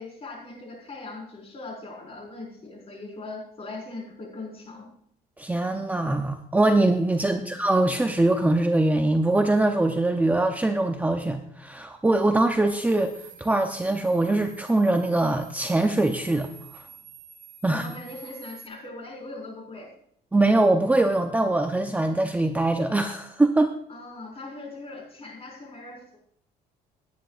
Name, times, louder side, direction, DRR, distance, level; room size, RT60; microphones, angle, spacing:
voice 1, 0.0-4.9 7.2-7.6 17.6-19.9 23.9-26.2, left 2 dB, 35° left, 0 dB, 4.9 m, -40 dB
voice 2, 5.4-13.1 13.4-16.5 16.7-16.9 17.6-17.9 20.3-23.7, right 2 dB, 10° right, 5 dB, 0.7 m, -22 dB
sound 1, 12.7-18.7, right 4 dB, 45° right, 2.6 m, -48 dB
17.5 x 9.9 x 2.5 m, 0.66 s
cardioid pair, 110°, 17 cm